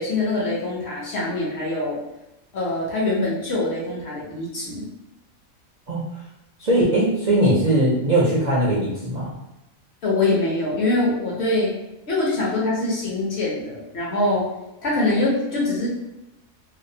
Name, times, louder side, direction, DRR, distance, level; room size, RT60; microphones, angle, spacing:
voice 1, 0.0-2.0 2.5-4.8 10.0-11.7 12.1-14.4 14.8-15.9, left 2 dB, 55° left, -5 dB, 0.9 m, -23 dB
voice 2, 6.6-9.3, right 1 dB, 55° right, -7 dB, 0.4 m, -20 dB
2.7 x 2.0 x 2.6 m, 0.93 s
omnidirectional pair, 1.5 m